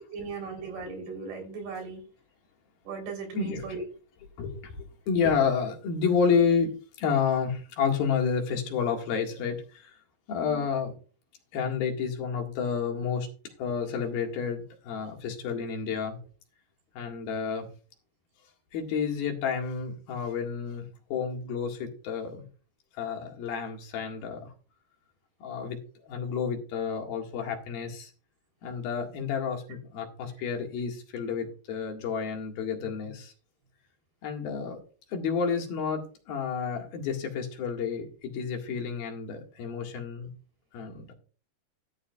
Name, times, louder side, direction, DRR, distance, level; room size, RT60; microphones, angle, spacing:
voice 1, 0.1-2.0 2.9-3.8 10.4-10.7, right 4 dB, 85° right, 3 dB, 5.6 m, -37 dB
voice 2, 4.4-4.8 5.1-6.7 7.0-9.9 10.3-10.9 11.5-13.3 13.6-16.2 17.0-17.7 18.7-20.8 21.1-22.4 23.0-24.5 25.4-25.8 26.1-28.1 28.6-33.3 34.2-34.8 35.1-40.3 40.7-41.1, left 6 dB, 75° left, 2 dB, 3.7 m, -30 dB
13.0 x 11.5 x 2.4 m, 0.39 s
omnidirectional pair, 4.3 m